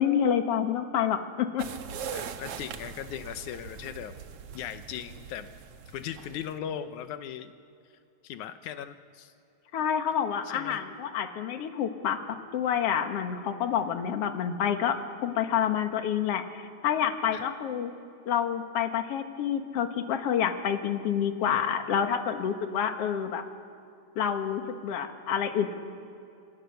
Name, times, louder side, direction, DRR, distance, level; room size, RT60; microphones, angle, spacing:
voice 1, 0.0-1.7 9.7-12.2 12.5-15.0 15.2-17.9 18.3-23.4 24.2-25.8, left 8 dB, 55° left, 6 dB, 2.4 m, -28 dB
sound 1, 1.6-6.6, right 7 dB, 60° right, 2.0 m, -41 dB
voice 2, 2.1-4.1 4.5-5.5 5.9-7.5 8.2-9.3 10.4-10.8 17.3-17.4, left 9 dB, 85° left, 10 dB, 2.3 m, -38 dB
27.5 x 27.0 x 6.8 m, 2.8 s
omnidirectional pair, 3.4 m